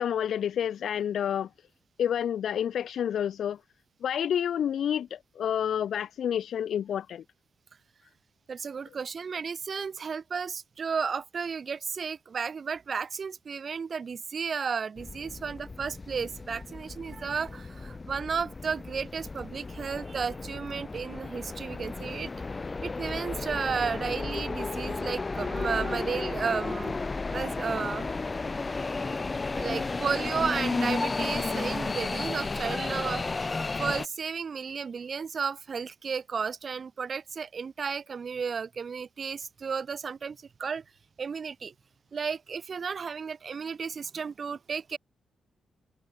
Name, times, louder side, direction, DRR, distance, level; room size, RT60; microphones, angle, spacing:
voice 1, 0.0-1.5 2.0-3.6 4.0-7.2, left 9 dB, 65° left, 1.6 m, -29 dB
voice 2, 8.5-22.3 22.8-27.0 27.3-28.1 29.5-40.8 41.2-41.7 42.1-45.0, right 6 dB, 35° right, 3.0 m, -33 dB
sound 1, 15.0-34.1, left 3 dB, 20° left, 1.0 m, -33 dB
wide cardioid pair, 165°, 0 cm